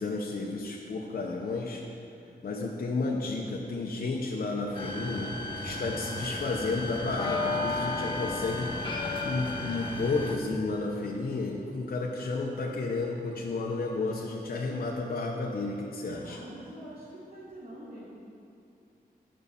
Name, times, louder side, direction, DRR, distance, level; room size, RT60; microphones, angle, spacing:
voice 1, 0.0-1.8 2.4-8.8 9.2-16.4, left 3 dB, 65° left, -2 dB, 0.8 m, -32 dB
sound 1, 4.7-10.4, left 2 dB, 30° left, 1.2 m, -33 dB
voice 2, 5.5-5.9 16.0-18.0, right 1 dB, 75° right, -12 dB, 2.6 m, -46 dB
9.7 x 5.4 x 6.9 m, 2.6 s
wide cardioid pair, 100°, 16 cm